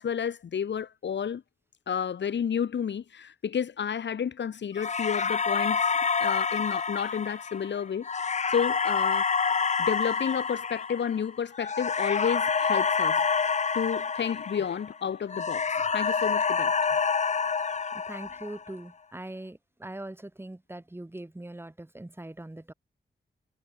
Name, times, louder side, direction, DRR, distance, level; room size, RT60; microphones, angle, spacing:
voice 1, 0.0-1.4 1.9-5.9 6.2-9.3 9.8-13.2 13.7-16.7, left 7 dB, 80° left, 3.1 m, -31 dB
sound 1, 4.8-15.0 15.3-18.7, left 5 dB, 40° left, 0.9 m, -27 dB
voice 2, 17.9-22.7, right 1 dB, 10° right, 7.5 m, -41 dB
wide cardioid pair, 135°, 18 cm